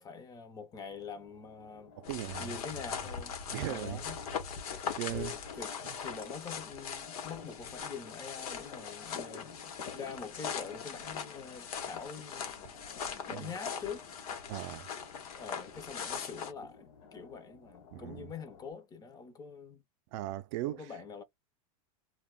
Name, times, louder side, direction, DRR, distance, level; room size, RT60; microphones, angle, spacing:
voice 1, 0.0-1.9 2.4-4.2 5.1-5.8 6.0-9.6 9.9-12.5 12.8-14.1 15.3-16.9 17.1-19.8 20.7-21.2, left 5 dB, 20° left, 0.5 m, -45 dB
sound 1, 0.7-18.7, left 5 dB, 65° left, 1.1 m, -54 dB
sound 2, 2.0-16.5, left 6 dB, 85° left, 1.0 m, -41 dB
voice 2, 2.0-2.5 3.5-4.0 5.0-5.3 5.8-5.9 13.3-13.5 14.5-14.9 17.9-18.3 20.1-20.9, right 15 dB, 60° right, 0.4 m, -38 dB
2.2 x 2.1 x 3.4 m
supercardioid pair, 130°, 18 cm